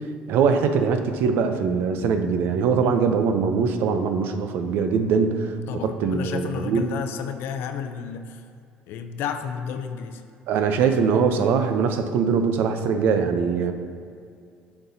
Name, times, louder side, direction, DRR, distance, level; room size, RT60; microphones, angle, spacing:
voice 1, 0.3-6.9 10.5-13.7, right 6 dB, 65° right, 8 dB, 0.5 m, -22 dB
voice 2, 5.7-8.4 8.9-10.2, left 7 dB, 70° left, 8 dB, 0.5 m, -32 dB
9.6 x 5.9 x 2.7 m, 2.3 s
cardioid pair, 105°, 4 cm